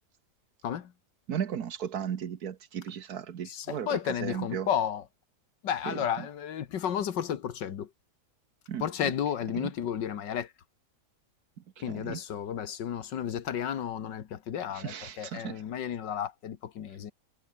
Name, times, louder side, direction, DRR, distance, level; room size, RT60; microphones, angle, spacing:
voice 1, 1.3-4.7 5.8-6.3 8.7-9.1 9.5-9.7 11.9-12.2 14.7-15.6, right 8 dB, 60° right, 1.6 m, -36 dB
voice 2, 3.5-5.0 5.6-7.9 8.8-10.5 11.8-17.1, left 9 dB, 80° left, 2.0 m, -32 dB
omnidirectional pair, 1.9 m